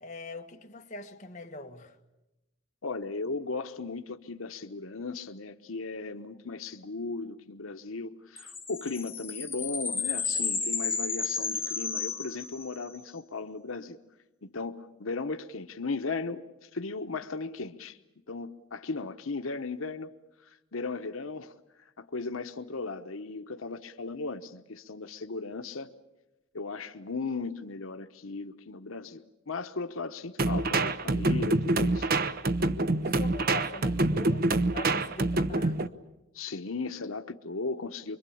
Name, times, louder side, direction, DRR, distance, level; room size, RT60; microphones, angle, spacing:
voice 1, 0.0-2.0 33.0-34.5 34.7-36.0, left 3 dB, 35° left, 1.8 m, -43 dB
voice 2, 2.8-14.0 14.4-18.0 18.3-20.1 20.4-21.5 22.0-25.9 26.5-32.1 36.3-38.2, left 3 dB, 85° left, 1.0 m, -36 dB
sound 1, 8.4-13.0, left 5 dB, 10° left, 1.1 m, -32 dB
sound 2, 30.4-35.9, right 2 dB, 45° right, 0.9 m, -26 dB
25.5 x 23.5 x 8.5 m
head